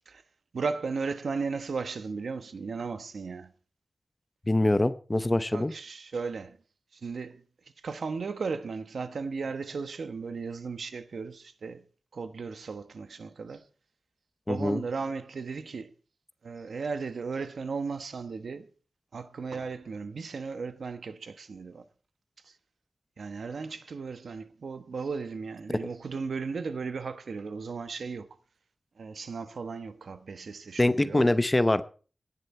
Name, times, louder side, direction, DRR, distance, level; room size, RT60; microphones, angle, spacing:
voice 1, 0.5-3.5 5.5-6.6 6.9-7.4 7.8-11.8 12.1-13.6 14.5-15.9 16.4-18.7 19.1-21.8 22.4-22.5 23.2-28.3 29.0-31.3, right 4 dB, 85° right, 1.2 m, -35 dB
voice 2, 4.5-5.7 14.5-14.8 30.8-31.8, left 1 dB, 20° left, 0.8 m, -24 dB
17.5 x 11.0 x 4.4 m
wide cardioid pair, 115°, 0 cm